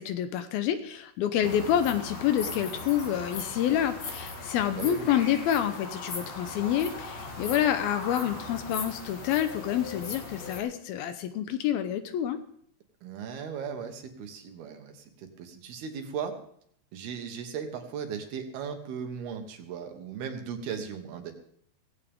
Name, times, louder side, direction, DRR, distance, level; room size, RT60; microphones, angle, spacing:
voice 1, 0.0-12.4, left 10 dB, 75° left, 10 dB, 2.4 m, -28 dB
sound 1, 1.4-10.6, left 3 dB, 45° left, 3.5 m, -39 dB
voice 2, 1.4-1.7 4.7-5.1 13.0-16.4 16.9-21.3, right 7 dB, 70° right, 6 dB, 3.2 m, -37 dB
17.5 x 16.0 x 3.6 m, 0.65 s
omnidirectional pair, 4.9 m